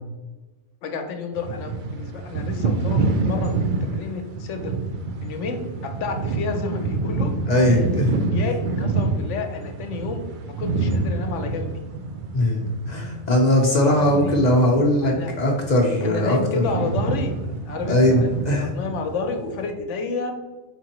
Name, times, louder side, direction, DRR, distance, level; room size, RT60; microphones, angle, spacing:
voice 1, 0.8-4.7 5.2-7.3 7.7-7.9 8.3-11.8 14.0-14.3 15.0-15.3 16.0-20.3, left 4 dB, 80° left, 5 dB, 1.0 m, -30 dB
sound 1, 1.3-15.7 15.9-19.7, right 3 dB, 60° right, 0.5 m, -27 dB
voice 2, 7.5-8.2 12.3-16.6 17.9-18.7, left 1 dB, 45° left, -1 dB, 0.7 m, -20 dB
4.5 x 3.7 x 2.9 m, 1.2 s
omnidirectional pair, 1.3 m